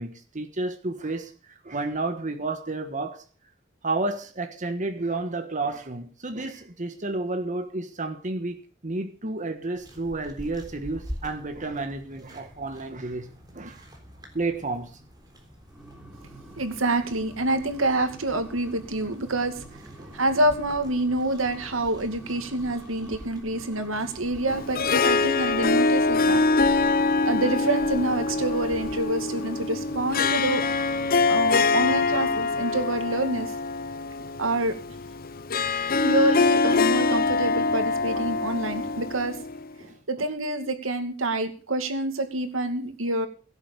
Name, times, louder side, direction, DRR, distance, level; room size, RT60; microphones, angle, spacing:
voice 1, 0.0-3.2 3.8-8.6 8.8-13.3 13.5-13.8 14.3-15.0 20.0-20.2 34.2-34.3 39.8-40.0, right 2 dB, 40° right, 1.4 m, -31 dB
sound 1, 9.7-29.0, equal, 20° right, 3.7 m, -46 dB
sound 2, 15.7-26.8 27.9-33.0, right 1 dB, 5° right, 3.7 m, -46 dB
voice 2, 16.6-19.7 20.1-26.9 27.2-30.6 31.3-33.5 34.4-34.7 36.0-39.4 40.1-43.3, right 1 dB, 85° right, 2.4 m, -27 dB
Harp, 24.5-39.7, left 3 dB, 50° left, 0.7 m, -24 dB
17.0 x 8.1 x 6.8 m
head